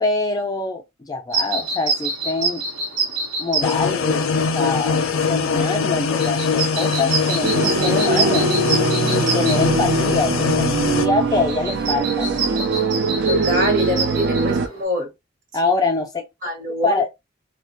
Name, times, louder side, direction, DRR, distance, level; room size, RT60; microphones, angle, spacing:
voice 1, 0.0-2.6 3.4-4.3 4.5-8.5 9.1-12.8 15.5-16.2 16.8-17.1, left 3 dB, 20° left, 0.3 m, -24 dB
sound 1, 1.3-14.8, right 3 dB, 80° right, 0.9 m, -28 dB
sound 2, 3.6-11.1, left 5 dB, 85° left, 0.5 m, -22 dB
sound 3, 7.4-14.7, right 3 dB, 55° right, 0.4 m, -22 dB
voice 2, 13.2-15.1 16.4-17.0, equal, 40° right, 0.9 m, -25 dB
2.3 x 2.1 x 2.8 m
head